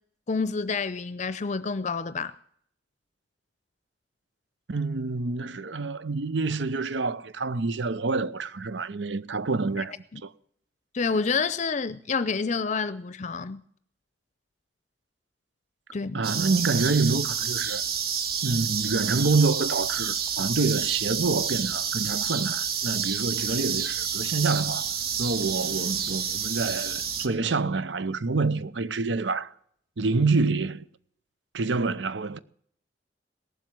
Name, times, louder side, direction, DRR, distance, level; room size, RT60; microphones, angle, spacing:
voice 1, 0.3-2.3 10.1-10.2 10.9-13.6 15.9-16.2, left 4 dB, 40° left, 0.6 m, -28 dB
voice 2, 4.7-10.3 16.1-17.8 18.4-24.9 25.2-29.5 30.0-30.8 31.5-32.4, right 3 dB, 85° right, 0.8 m, -27 dB
sound 1, 16.2-27.3, right 7 dB, 60° right, 1.5 m, -29 dB
18.0 x 7.6 x 9.1 m
head